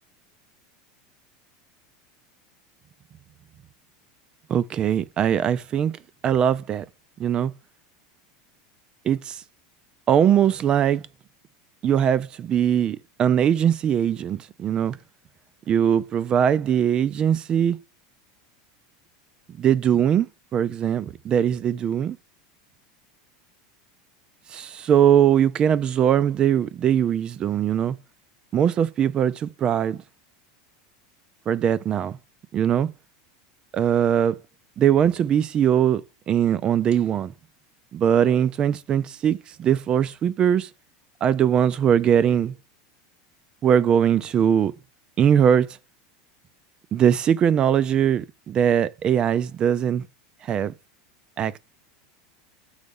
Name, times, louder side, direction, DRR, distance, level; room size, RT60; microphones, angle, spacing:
voice 1, 4.5-6.9 7.2-7.5 9.0-9.4 10.1-11.0 11.8-15.0 15.7-17.8 19.6-22.2 24.5-28.0 28.5-30.0 31.5-32.2 32.5-32.9 33.7-34.4 34.8-37.3 37.9-40.7 41.2-42.5 43.6-44.7 45.2-45.8 46.9-50.1 50.4-50.7 51.4-51.6, right 9 dB, 30° right, 0.4 m, -21 dB
6.5 x 4.0 x 5.4 m
supercardioid pair, 135°, 3 cm